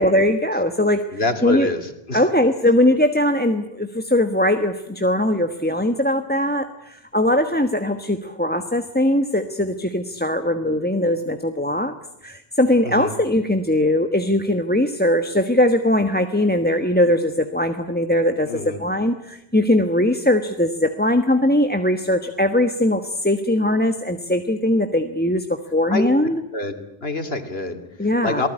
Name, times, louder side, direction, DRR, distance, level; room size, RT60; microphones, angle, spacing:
voice 1, 0.0-1.7 2.1-11.9 12.2-26.4 28.0-28.5, left 1 dB, 10° left, 8 dB, 1.2 m, -20 dB
voice 2, 1.1-2.2 12.8-13.1 18.5-18.8 25.9-26.1 26.5-26.7 27.0-27.8 28.2-28.5, left 2 dB, 75° left, 7 dB, 3.1 m, -26 dB
27.5 x 19.0 x 10.0 m, 0.84 s
omnidirectional pair, 1.1 m